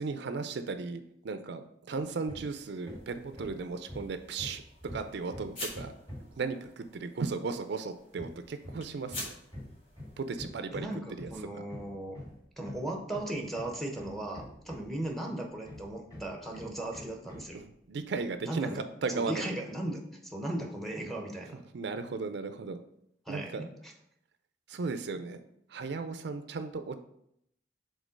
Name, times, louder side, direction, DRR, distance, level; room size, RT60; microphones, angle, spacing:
voice 1, 0.0-4.6 4.9-5.9 6.4-9.3 10.2-10.9 11.2-11.3 17.4-19.5 21.7-22.8 23.3-23.6 24.7-25.4 25.7-27.0, right 4 dB, 70° right, 9 dB, 0.4 m, -36 dB
Hammer, 2.3-2.6 2.8-6.4 8.2-15.1 15.6-17.6, left 1 dB, 20° left, 2.6 m, -46 dB
sound 1, 2.5-10.3, left 1 dB, 50° left, 2.2 m, -48 dB
voice 2, 10.7-12.2 12.6-17.6 18.4-21.6 23.3-23.9, right 1 dB, ahead, 1 dB, 0.9 m, -37 dB
5.1 x 3.8 x 5.1 m, 0.75 s
head